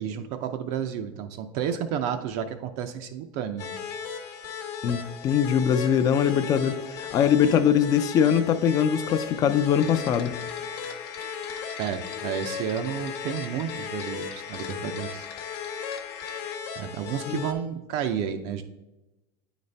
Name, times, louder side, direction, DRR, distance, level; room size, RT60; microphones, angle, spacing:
voice 1, 0.0-3.8 11.8-15.3 16.8-18.6, right 8 dB, 50° right, 6 dB, 0.4 m, -31 dB
sound 1, 3.6-17.5, left 7 dB, 55° left, 1.1 m, -37 dB
voice 2, 4.8-10.4 17.3-17.4, left 8 dB, 25° left, 9 dB, 0.4 m, -22 dB
sound 2, 9.7-16.6, left 9 dB, 75° left, 0.8 m, -42 dB
9.4 x 4.0 x 3.3 m, 1.0 s
supercardioid pair, 155°, 13 cm